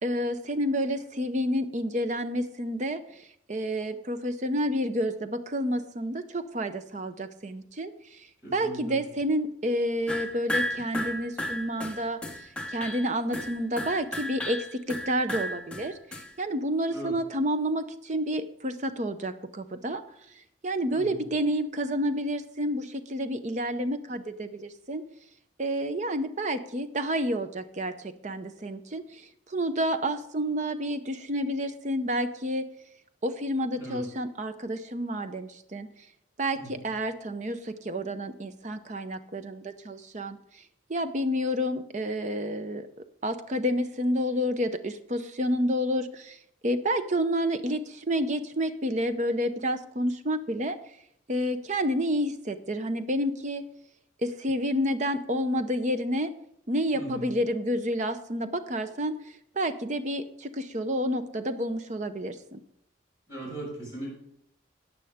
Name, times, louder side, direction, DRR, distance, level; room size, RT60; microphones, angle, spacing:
voice 1, 0.0-15.9 16.4-20.0 20.6-25.0 25.6-29.2 29.5-32.7 33.2-35.9 36.4-40.4 40.9-42.9 43.2-46.4 46.6-50.8 51.3-53.6 54.2-56.3 56.7-59.2 59.5-62.6, equal, 40° right, 10 dB, 0.7 m, -29 dB
voice 2, 8.4-9.0 16.9-17.1 20.9-21.2 33.7-34.0 36.5-36.9 56.9-57.2 63.3-64.1, right 1 dB, 15° right, -5 dB, 5.7 m, -38 dB
sound 1, 10.1-16.3, left 1 dB, 5° left, 0.9 m, -34 dB
14.0 x 9.1 x 3.6 m, 0.73 s
head